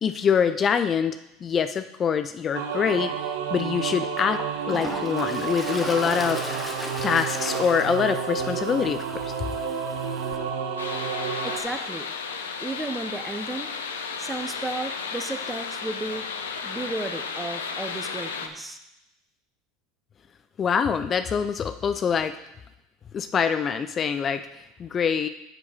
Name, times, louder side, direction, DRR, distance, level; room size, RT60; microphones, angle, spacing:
voice 1, 0.0-3.2 3.5-4.4 4.7-6.4 7.0-9.3 20.6-22.3 23.1-25.3, left 7 dB, 35° left, 10 dB, 0.4 m, -25 dB
sound 1, 2.5-11.6, right 6 dB, 75° right, 0.8 m, -30 dB
Toilet flush, 3.6-3.7 4.2-10.4, left 2 dB, 10° left, 1.2 m, -38 dB
sound 2, 10.8-18.5, left 5 dB, 90° left, 0.7 m, -33 dB
voice 2, 11.4-12.1 12.6-13.7 14.2-16.3 16.6-18.8, right 2 dB, 15° right, 8 dB, 0.8 m, -33 dB
7.0 x 6.8 x 4.4 m, 0.87 s
hypercardioid pair, 85°, 0 cm